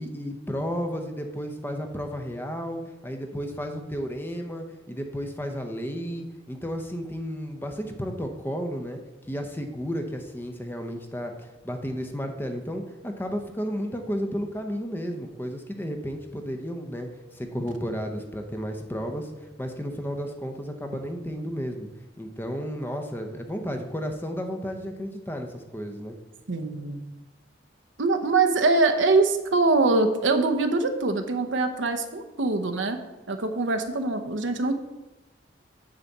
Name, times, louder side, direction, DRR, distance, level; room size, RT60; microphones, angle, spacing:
voice 1, 0.0-19.3 19.6-21.9 22.2-26.2, equal, 10° left, 4 dB, 0.7 m, -33 dB
voice 2, 26.5-27.0 28.0-33.0 33.3-34.7, right 3 dB, 80° right, 7 dB, 0.8 m, -23 dB
8.8 x 4.1 x 7.2 m, 1.1 s
head